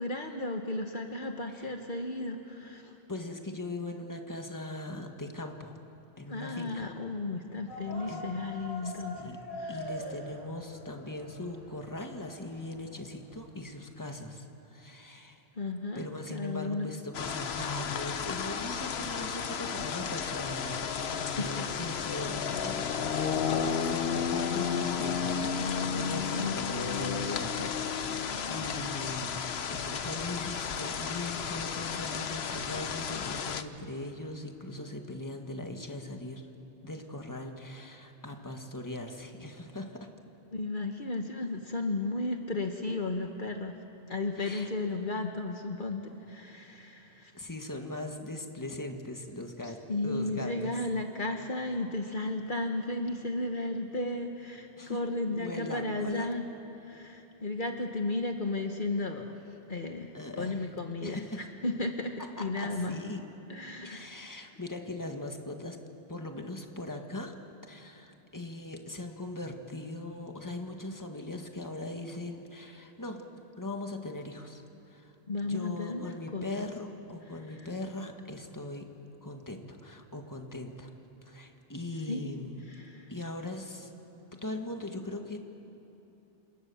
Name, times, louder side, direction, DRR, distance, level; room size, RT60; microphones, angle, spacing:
voice 1, 0.0-3.0 6.3-10.0 15.5-16.0 16.3-16.9 21.1-21.7 22.5-22.8 26.3-26.6 40.5-43.8 44.1-47.3 49.6-56.4 56.7-63.0 63.5-64.1 75.3-76.7 77.5-77.7 82.1-82.2 82.7-83.1, left 2 dB, 55° left, 4 dB, 1.4 m, -34 dB
voice 2, 3.1-5.8 6.2-6.9 8.1-8.2 8.8-8.9 9.2-9.4 9.7-15.4 16.0-29.4 29.7-36.5 36.8-40.1 44.4-44.7 47.3-50.7 54.8-55.1 55.4-56.3 60.1-60.7 61.0-61.5 62.4-63.2 63.8-65.8 66.1-67.3 67.7-73.3 73.6-75.1 75.4-78.9 79.2-80.9 81.2-82.6 83.1-83.9 84.4-85.4, left 2 dB, 20° left, 4 dB, 1.8 m, -40 dB
sound 1, 7.7-13.6, equal, 55° right, 5.6 m, -44 dB
sound 2, 17.1-33.6, left 7 dB, 85° left, 1.2 m, -33 dB
29.0 x 27.0 x 7.1 m, 3.0 s
omnidirectional pair, 1.0 m